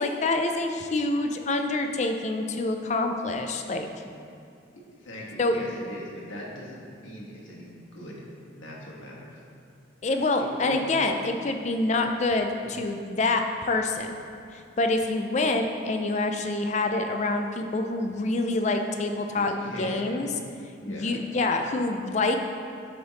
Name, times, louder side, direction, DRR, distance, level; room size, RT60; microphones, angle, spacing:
voice 1, 0.0-3.9 5.4-5.5 10.0-14.1 14.5-20.3 20.9-22.4, left 2 dB, 35° left, 5 dB, 0.4 m, -26 dB
voice 2, 5.0-9.4 10.0-10.8 12.6-12.7 19.3-20.1 20.8-21.2, equal, 75° left, -4 dB, 1.3 m, -41 dB
9.7 x 3.4 x 4.0 m, 2.4 s
head